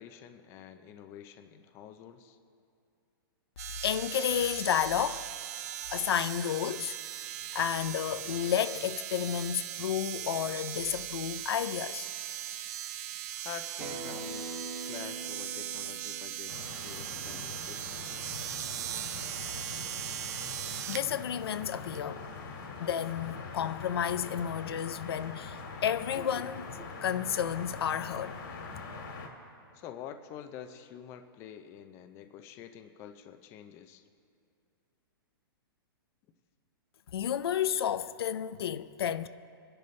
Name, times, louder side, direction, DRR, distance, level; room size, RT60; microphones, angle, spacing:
voice 1, 0.0-2.4 13.4-18.2 29.7-34.0, left 9 dB, 20° left, 0.5 m, -47 dB
sound 1, 3.6-21.0 21.9-22.0, right 12 dB, 40° right, 0.4 m, -39 dB
voice 2, 3.8-5.3 5.8-7.0 7.5-12.1 20.9-22.2 22.8-26.7 27.0-28.4 37.1-39.3, left 9 dB, 90° left, 0.5 m, -31 dB
Acoustic guitar, 13.8-19.0, right 3 dB, 60° right, 2.6 m, -45 dB
sound 2, 16.5-29.3, left 4 dB, 65° left, 2.1 m, -43 dB
23.5 x 11.0 x 3.2 m
hypercardioid pair, 165°, 13 cm